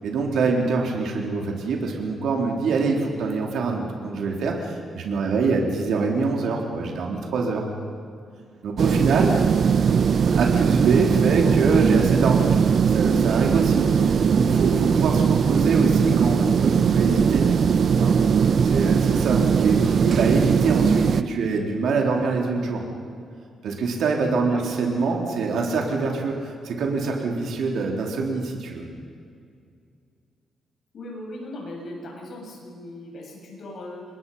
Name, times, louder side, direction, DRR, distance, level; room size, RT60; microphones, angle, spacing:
voice 1, 0.0-7.7 8.6-9.3 10.3-12.6 12.9-17.5 18.0-18.1 18.6-22.8 23.6-28.9, right 4 dB, 75° right, 1 dB, 3.8 m, -24 dB
sound 1, 8.8-21.2, right 6 dB, 50° right, 0.7 m, -20 dB
voice 2, 30.9-34.1, left 1 dB, 55° left, -2 dB, 7.8 m, -38 dB
28.0 x 22.0 x 5.7 m, 2.3 s
cardioid pair, 130°, 0 cm